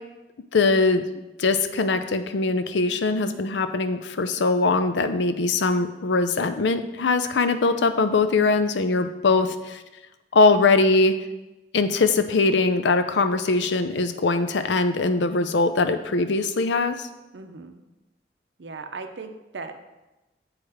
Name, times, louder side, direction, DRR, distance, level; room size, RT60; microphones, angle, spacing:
voice 1, 0.5-1.0 1.4-9.8 10.3-11.1 11.7-17.1, left 3 dB, 90° left, 9 dB, 0.6 m, -21 dB
voice 2, 17.3-17.8 18.6-19.8, right 4 dB, 85° right, 7 dB, 0.7 m, -38 dB
7.7 x 4.8 x 4.9 m, 1.0 s
head